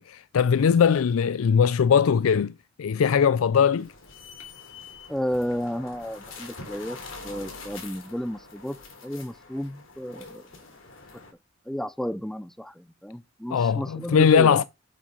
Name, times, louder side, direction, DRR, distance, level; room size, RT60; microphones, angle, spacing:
voice 1, 0.0-2.5 2.8-3.9 13.5-14.6, left 7 dB, 90° left, 0.4 m, -20 dB
sound 1, 3.8-11.3, left 4 dB, 65° left, 3.3 m, -44 dB
voice 2, 5.1-7.0 7.2-8.8 9.0-10.4 11.7-14.6, equal, ahead, 0.4 m, -32 dB
8.3 x 6.0 x 5.4 m
head